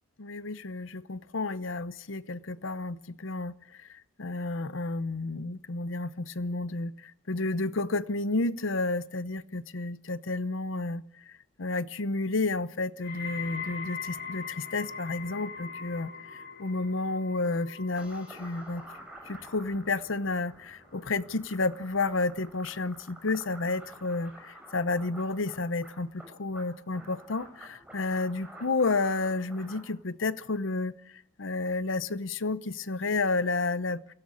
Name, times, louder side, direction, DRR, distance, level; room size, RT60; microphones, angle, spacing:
voice 1, 0.2-3.5 4.2-6.9 7.3-11.0 11.6-16.1 16.6-18.8 19.3-30.9 31.4-34.1, left 3 dB, 75° left, 0.8 m, -31 dB
sound 1, 13.0-24.2 24.5-25.0 25.7-25.8, left 5 dB, 55° left, 2.9 m, -43 dB
sound 2, 18.0-29.8, right 1 dB, 5° right, 6.2 m, -50 dB
23.0 x 17.0 x 8.6 m
head